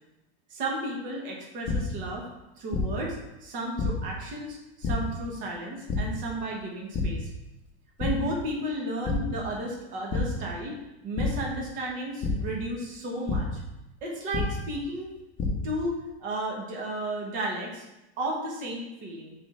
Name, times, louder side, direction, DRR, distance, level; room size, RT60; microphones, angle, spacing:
voice 1, 0.5-2.3 2.6-7.3 8.0-10.8 11.0-13.6 14.0-15.1 15.6-17.8 18.2-19.3, right 1 dB, 25° right, -1 dB, 1.1 m, -33 dB
sound 1, 1.6-1.7 2.7-2.8 3.8-3.9 4.8-4.9 5.9-6.0 6.9-7.0 7.5-7.7 8.0-8.1 9.0-9.1 10.1-10.2 11.2-11.3 12.2-12.3 13.3-13.4 14.3-14.4 15.1-15.5, left 5 dB, 15° left, 0.8 m, -28 dB
5.2 x 4.5 x 5.5 m, 0.96 s
supercardioid pair, 175°, 31 cm